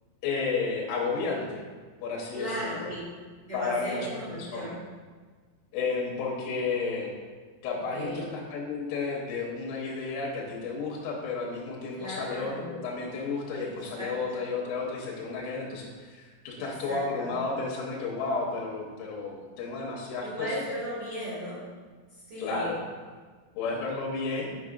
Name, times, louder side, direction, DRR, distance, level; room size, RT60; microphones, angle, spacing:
voice 1, 0.2-1.6 2.0-2.9 3.5-4.8 5.7-7.1 7.6-20.6 22.4-22.8 23.5-24.5, left 4 dB, 85° left, -2 dB, 3.4 m, -32 dB
voice 2, 2.3-3.0 3.5-4.7 7.9-8.2 11.9-12.8 13.6-14.1 16.6-17.3 20.2-21.6 22.3-22.7, equal, 90° right, -10 dB, 1.3 m, -36 dB
7.7 x 5.6 x 2.4 m, 1.5 s
omnidirectional pair, 5.7 m